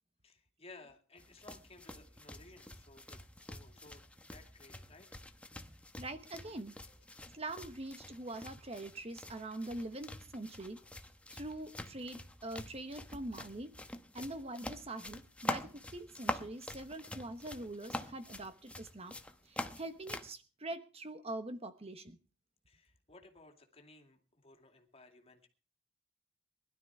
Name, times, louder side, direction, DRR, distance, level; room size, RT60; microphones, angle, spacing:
voice 1, 0.2-5.1 6.9-7.0 14.2-14.4 22.7-25.5, left 2 dB, 30° left, 4 dB, 2.4 m, -58 dB
sound 1, 1.2-20.3, left 1 dB, 5° left, 1.0 m, -46 dB
voice 2, 6.0-6.8 7.3-10.8 11.3-13.8 14.1-19.1 19.4-22.2, right 2 dB, 30° right, 10 dB, 1.1 m, -44 dB
20.5 x 12.5 x 4.8 m, 0.37 s
head